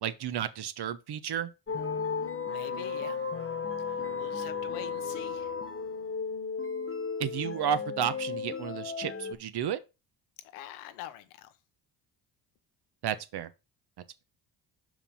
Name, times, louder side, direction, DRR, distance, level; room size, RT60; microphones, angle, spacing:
voice 1, 0.0-1.5 7.2-9.8 13.0-13.5, right 9 dB, 50° right, 1.0 m, -32 dB
sound 1, 1.7-9.3, left 5 dB, 25° left, 1.4 m, -34 dB
voice 2, 2.5-3.2 3.9-5.5 10.5-11.5, left 11 dB, 80° left, 1.0 m, -45 dB
5.6 x 4.9 x 5.7 m
hypercardioid pair, 60°, 50 cm